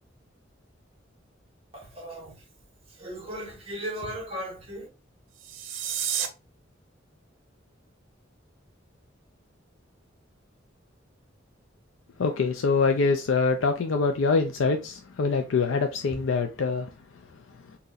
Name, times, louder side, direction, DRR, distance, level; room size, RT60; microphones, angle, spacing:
voice 1, 1.7-2.4 3.0-4.9, equal, 30° right, 1.5 m, -36 dB
sound 1, 5.3-6.3, right 9 dB, 90° right, 0.6 m, -30 dB
voice 2, 12.2-16.9, left 4 dB, 85° left, 0.4 m, -24 dB
3.9 x 2.8 x 2.5 m
head